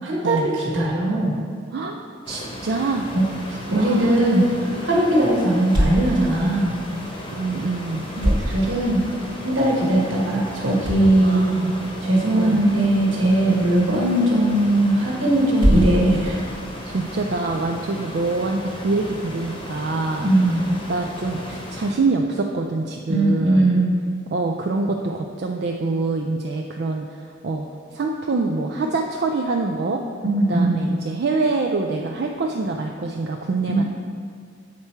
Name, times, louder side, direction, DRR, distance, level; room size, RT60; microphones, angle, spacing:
voice 1, 0.0-1.4 3.1-6.8 8.2-9.0 9.4-11.5 12.0-16.4 20.2-20.6 23.1-23.9 30.2-30.8 33.7-33.8, right 1 dB, 75° right, -4 dB, 1.3 m, -19 dB
voice 2, 1.7-3.1 3.7-4.2 7.3-8.1 8.5-8.6 11.2-11.9 12.3-12.6 16.8-20.3 20.9-23.7 24.3-27.7 27.9-30.0 30.5-33.8, right 3 dB, 55° right, 1 dB, 0.4 m, -25 dB
sound 1, 2.2-21.9, equal, 25° left, 0.9 m, -35 dB
sound 2, 4.0-17.6, equal, 25° right, 1.3 m, -29 dB
7.3 x 4.5 x 4.4 m, 2.1 s
head